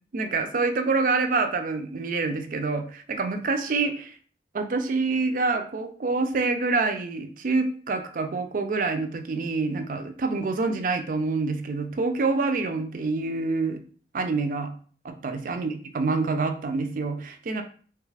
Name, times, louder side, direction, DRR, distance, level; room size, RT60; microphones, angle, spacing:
voice 1, 0.1-4.1 4.5-13.8 14.1-14.7 15.0-17.6, right 3 dB, 50° right, 7 dB, 0.4 m, -26 dB
3.2 x 2.3 x 3.2 m, 0.43 s
head